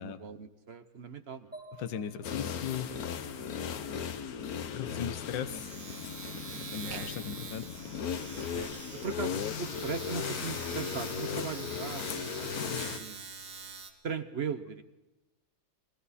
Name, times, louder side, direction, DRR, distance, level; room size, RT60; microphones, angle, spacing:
voice 1, 0.0-1.5 3.3-3.6 3.9-4.1 4.9-5.0 6.3-6.6 8.5-13.2 14.0-14.8, right 5 dB, 50° right, 9 dB, 0.8 m, -39 dB
sound 1, 1.5-5.2, right 2 dB, 5° right, 6.0 m, -53 dB
voice 2, 1.8-2.9 4.7-5.7 6.7-7.7, left 8 dB, 70° left, 10 dB, 1.6 m, -37 dB
Domestic sounds home sounds, 2.1-2.3 2.6-13.9, right 5 dB, 70° right, 2.3 m, -45 dB
sound 2, 2.2-13.0, left 7 dB, 55° left, 1.3 m, -37 dB
29.5 x 21.0 x 4.2 m, 1.0 s
omnidirectional pair, 2.1 m